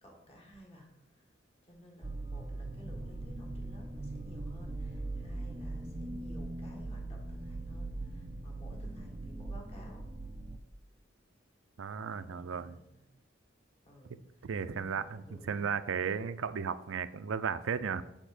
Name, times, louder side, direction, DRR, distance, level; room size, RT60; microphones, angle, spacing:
voice 1, 0.0-10.1 12.2-13.1 13.8-15.7 16.0-16.2, equal, 30° left, 0 dB, 1.6 m, -55 dB
sound 1, 2.0-10.6, right 2 dB, 20° right, 0.5 m, -40 dB
voice 2, 11.8-12.8 14.4-18.0, right 6 dB, 80° right, 13 dB, 0.4 m, -35 dB
7.9 x 3.6 x 6.4 m, 0.89 s
head